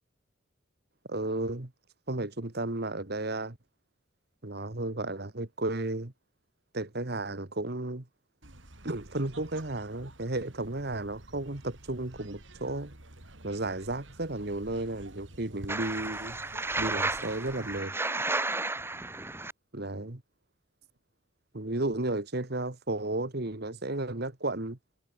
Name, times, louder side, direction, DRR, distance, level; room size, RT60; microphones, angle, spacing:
voice 1, 1.1-1.7 2.1-3.6 4.4-6.1 6.7-8.1 8.8-12.9 13.4-16.4 16.8-17.9 19.7-20.2 21.5-24.8, right 2 dB, 55° right, 1.7 m, -33 dB
sound 1, 8.4-17.8, right 1 dB, 70° right, 4.8 m, -50 dB
sound 2, 15.7-19.5, right 2 dB, 10° right, 1.4 m, -32 dB
head